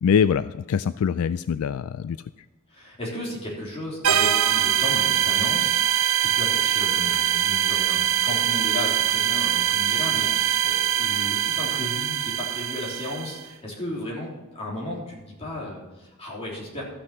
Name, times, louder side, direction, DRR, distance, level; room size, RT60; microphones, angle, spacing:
voice 1, 0.0-2.2, left 7 dB, 75° left, 14 dB, 0.3 m, -23 dB
voice 2, 2.7-5.8 6.2-16.8, left 1 dB, 30° left, -4 dB, 3.5 m, -34 dB
sound 1, 4.0-13.4, right 11 dB, 75° right, 0.7 m, -23 dB
13.5 x 6.3 x 5.8 m, 1.1 s
head